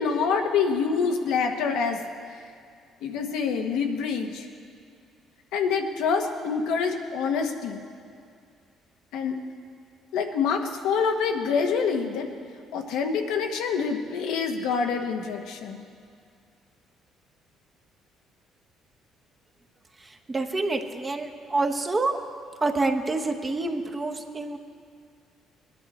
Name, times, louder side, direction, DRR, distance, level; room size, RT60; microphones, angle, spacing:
voice 1, 0.0-2.0 3.0-4.5 5.5-7.8 9.1-9.4 10.1-12.3 12.7-15.8, left 5 dB, 85° left, 4 dB, 1.2 m, -26 dB
voice 2, 20.3-22.2 22.6-24.6, right 3 dB, 20° right, 4 dB, 1.0 m, -27 dB
20.5 x 10.5 x 4.2 m, 2.3 s
cardioid pair, 115°, 0 cm